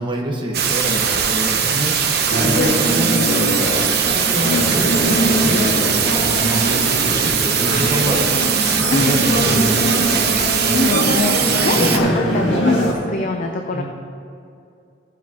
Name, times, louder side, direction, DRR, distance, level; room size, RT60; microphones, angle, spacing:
voice 1, 0.0-1.9 2.4-3.9 4.6-5.1 5.3-8.3 8.8-10.1 11.6-12.0 13.7-13.8, right 1 dB, 25° right, -1 dB, 1.3 m, -27 dB
sound 1, 0.5-12.0, right 7 dB, 60° right, 0.8 m, -20 dB
sound 2, 2.3-12.9, equal, 75° left, 1.6 m, -21 dB
voice 2, 4.4-4.9 7.0-7.2 8.9-9.2 10.7-11.4 11.6-13.8, left 3 dB, 45° left, 3 dB, 0.5 m, -23 dB
15.0 x 7.4 x 2.9 m, 2.5 s
head